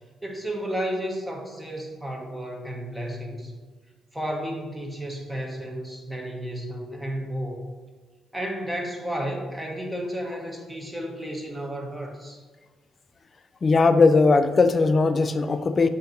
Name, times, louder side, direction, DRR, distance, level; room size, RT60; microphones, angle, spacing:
voice 1, 0.2-3.5 4.1-7.6 8.3-12.4, equal, 10° right, 0 dB, 1.2 m, -32 dB
voice 2, 13.6-15.9, left 4 dB, 35° left, 11 dB, 0.4 m, -19 dB
6.8 x 2.9 x 5.2 m, 1.4 s
cardioid pair, 90°, 0 cm